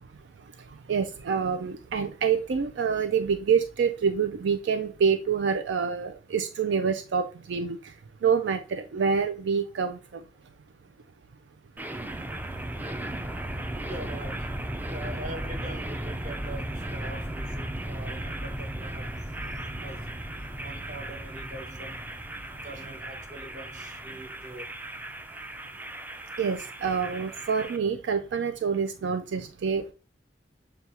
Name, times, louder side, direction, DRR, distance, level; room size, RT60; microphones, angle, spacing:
voice 1, 0.9-7.8 8.2-10.0 26.4-29.9, right 6 dB, 85° right, 0.4 m, -26 dB
sound 1, 11.8-27.8, right 1 dB, 10° right, 0.3 m, -36 dB
voice 2, 13.8-14.6 14.9-19.3 19.8-20.2 20.6-22.1 22.4-24.7, right 1 dB, 45° right, 1.0 m, -43 dB
6.8 x 2.3 x 2.8 m
head